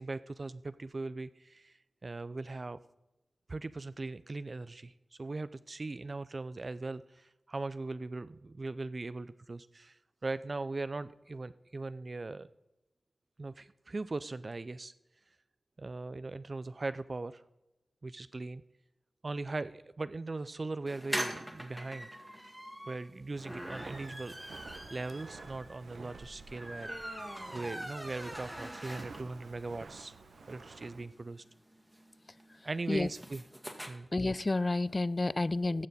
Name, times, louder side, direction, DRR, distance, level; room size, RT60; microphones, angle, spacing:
voice 1, 0.0-2.8 3.5-4.9 5.2-12.5 13.4-14.9 15.8-17.4 18.0-18.6 19.2-22.1 22.9-30.2 30.5-31.4 32.6-33.5 33.9-34.1 35.6-35.9, right 3 dB, 45° right, 14 dB, 0.3 m, -40 dB
sound 1, 20.9-29.4 29.8-29.9 30.2-30.3 30.5-33.9, equal, 5° right, 1.7 m, -42 dB
Walk footsteps, 23.4-31.0, right 4 dB, 90° right, 0.9 m, -51 dB
voice 2, 34.1-35.9, left 2 dB, 35° left, 19 dB, 0.4 m, -30 dB
14.5 x 6.6 x 4.1 m, 0.96 s
wide cardioid pair, 65°, 0 cm